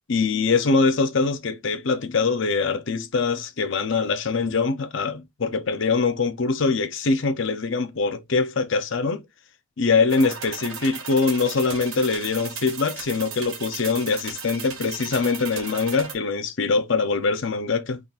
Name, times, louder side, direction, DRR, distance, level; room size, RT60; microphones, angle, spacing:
voice 1, 0.1-9.2 9.8-18.0, left 4 dB, 60° left, 0.6 m, -23 dB
sound 1, 10.1-16.1, right 6 dB, 80° right, 1.4 m, -36 dB
3.7 x 2.5 x 4.0 m
head